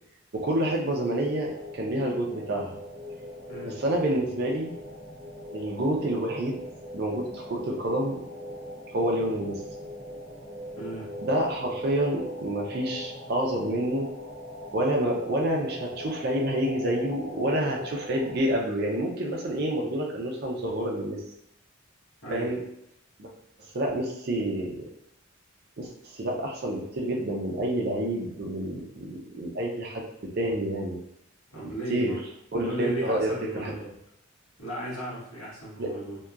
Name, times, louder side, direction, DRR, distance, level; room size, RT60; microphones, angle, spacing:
voice 1, 0.3-2.8 3.8-4.7 5.5-6.6 6.9-8.2 8.9-9.6 11.2-14.1 14.7-21.2 22.3-22.6 23.2-23.3 23.7-24.8 25.8-30.0 30.4-31.0 31.6-32.1 32.5-33.7 35.8-35.9, right 1 dB, 45° right, 0 dB, 0.4 m, -28 dB
sound 1, 1.3-18.4, left 1 dB, 5° right, 1.2 m, -40 dB
voice 2, 3.5-3.8 10.7-11.1 22.2-22.5 31.5-32.2 32.6-33.9 34.6-36.2, right 1 dB, 85° left, -6 dB, 1.1 m, -36 dB
2.8 x 2.2 x 2.3 m, 0.77 s
head